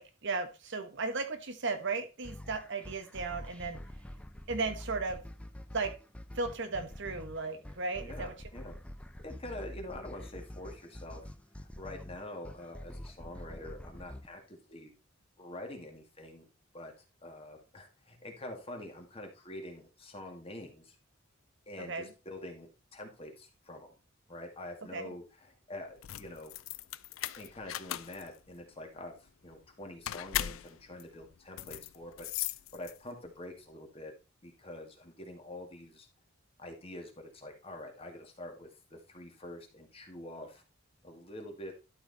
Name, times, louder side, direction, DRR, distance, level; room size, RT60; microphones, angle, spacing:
voice 1, 0.0-3.8 4.5-5.2 5.7-5.9 6.3-8.3 21.8-22.1 24.9-25.1, right 3 dB, 65° right, 8 dB, 1.3 m, -35 dB
sound 1, 2.2-14.3, left 1 dB, 5° left, 0.5 m, -46 dB
voice 2, 8.0-8.8 9.2-11.3 11.6-14.9 15.4-16.5 16.7-16.9 17.2-21.0 21.7-23.9 24.3-26.5 27.4-32.3 32.7-34.1 34.4-36.1 36.6-40.6 41.0-41.7, left 1 dB, 30° left, 3 dB, 2.1 m, -46 dB
sound 2, 25.9-33.3, left 12 dB, 80° left, 0.4 m, -39 dB
12.0 x 4.8 x 4.0 m, 0.30 s
head